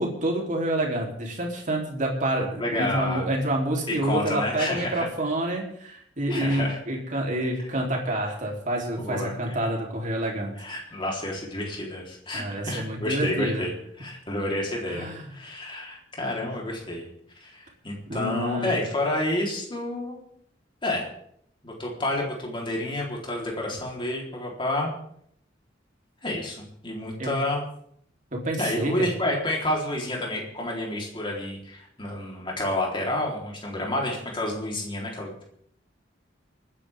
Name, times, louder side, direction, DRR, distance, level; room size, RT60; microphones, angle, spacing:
voice 1, 0.0-10.5 12.3-13.7 14.9-15.3 18.1-18.7 27.2-27.3 28.3-29.1, right 1 dB, 45° right, 0 dB, 3.6 m, -28 dB
voice 2, 2.6-3.3 3.9-5.1 6.3-6.8 9.0-9.3 10.6-13.7 14.0-17.1 17.4-20.2 20.8-21.1 21.6-24.9 26.2-27.7 28.6-35.4, left 1 dB, 25° left, -1 dB, 3.9 m, -29 dB
29.0 x 10.0 x 3.7 m, 0.69 s
head